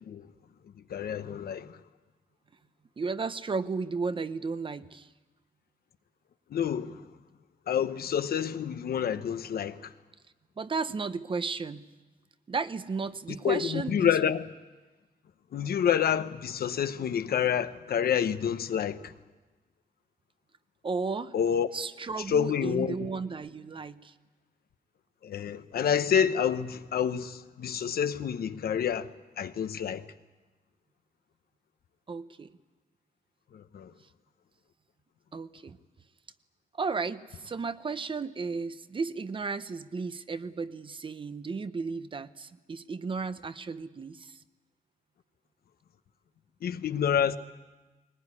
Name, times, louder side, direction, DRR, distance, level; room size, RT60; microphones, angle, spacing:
voice 1, 0.9-1.8 6.5-7.0 7.7-9.9 13.4-14.5 15.5-19.1 21.3-21.7 22.3-23.1 25.2-29.1 29.4-30.0 33.5-33.9 46.6-47.4, left 8 dB, 80° left, 1.0 m, -28 dB
voice 2, 3.0-5.1 10.6-11.8 12.5-14.1 20.8-21.3 21.7-24.1 32.1-32.5 35.3-35.8 36.8-44.4, right 4 dB, 35° right, 0.7 m, -34 dB
21.0 x 20.0 x 9.7 m
wide cardioid pair, 155°, 16 cm